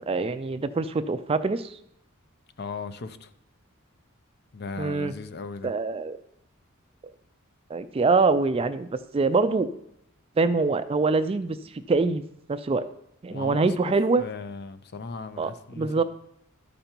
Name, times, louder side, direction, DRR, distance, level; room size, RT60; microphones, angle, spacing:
voice 1, 0.0-1.8 4.8-5.1 5.6-6.2 7.7-9.7 10.4-12.2 12.5-12.9 13.2-14.2 15.4-15.5 15.8-16.0, right 3 dB, 25° right, 12 dB, 0.4 m, -24 dB
voice 2, 2.6-3.3 4.5-5.7 13.3-16.0, left 4 dB, 50° left, 11 dB, 0.6 m, -37 dB
13.0 x 5.1 x 4.4 m, 0.79 s
head